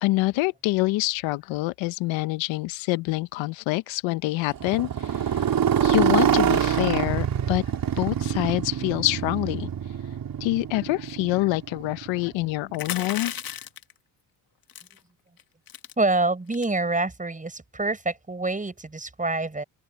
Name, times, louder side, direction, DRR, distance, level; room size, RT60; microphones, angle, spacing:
voice 1, 0.0-5.5 5.8-7.6 8.0-9.7 10.4-13.6, left 20 dB, 80° left, 1.1 m, -26 dB
Motorcycle, 4.5-12.5, right 9 dB, 50° right, 3.4 m, -25 dB
sound 1, 12.7-13.9 14.7-15.0 15.4-15.5 15.7-15.9 16.5-16.8, left 10 dB, 50° left, 1.7 m, -34 dB
voice 2, 16.0-19.6, right 2 dB, 15° right, 6.4 m, -26 dB
open air
supercardioid pair, 80°, 45 cm